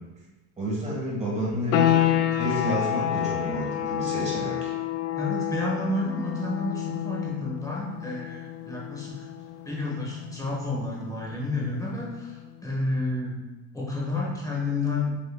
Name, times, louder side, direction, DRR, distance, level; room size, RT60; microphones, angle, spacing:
voice 1, 0.6-4.7, equal, 15° right, -5 dB, 1.4 m, -30 dB
sound 1, 1.7-12.2, left 12 dB, 70° left, 0.5 m, -29 dB
voice 2, 5.2-9.3 9.6-13.4 13.7-15.1, left 2 dB, 10° left, -5 dB, 1.1 m, -30 dB
6.8 x 3.0 x 2.3 m, 1.1 s
cardioid pair, 145°, 40 cm